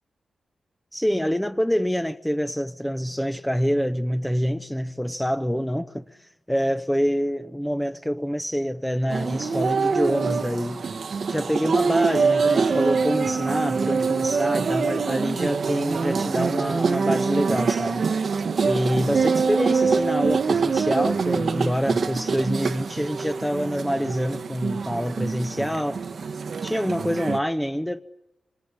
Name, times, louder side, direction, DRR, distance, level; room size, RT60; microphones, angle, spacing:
voice 1, 0.9-10.8 11.3-18.1 18.6-26.0 26.6-28.0, equal, 5° left, 0.9 m, -26 dB
sound 1, 9.1-27.4, right 5 dB, 65° right, 1.0 m, -25 dB
25.0 x 20.5 x 9.7 m
supercardioid pair, 40°, 0 cm